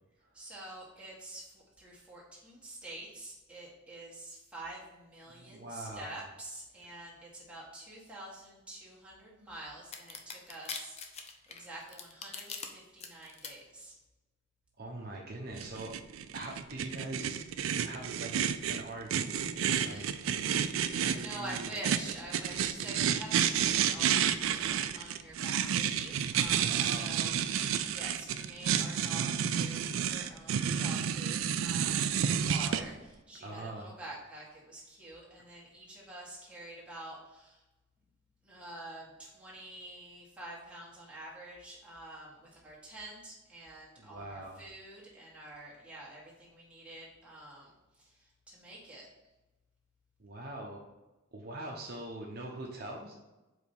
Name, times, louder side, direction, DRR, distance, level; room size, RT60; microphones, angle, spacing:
voice 1, 0.3-13.9 19.8-37.6 38.4-49.1, right 1 dB, 5° right, -6 dB, 1.6 m, -47 dB
voice 2, 5.3-6.2 14.8-16.0 16.3-17.4 17.8-18.3 18.7-20.6 21.0-21.7 26.7-27.2 32.3-32.9 33.4-33.9 44.0-44.6 50.2-50.8 51.3-53.1, right 1 dB, 50° right, -1 dB, 0.8 m, -43 dB
sound 1, 9.9-12.7 13.0-13.5, left 5 dB, 30° left, 0.6 m, -41 dB
sound 2, 15.6-32.8, right 8 dB, 80° right, 0.4 m, -30 dB
4.9 x 4.1 x 5.3 m, 1.1 s
head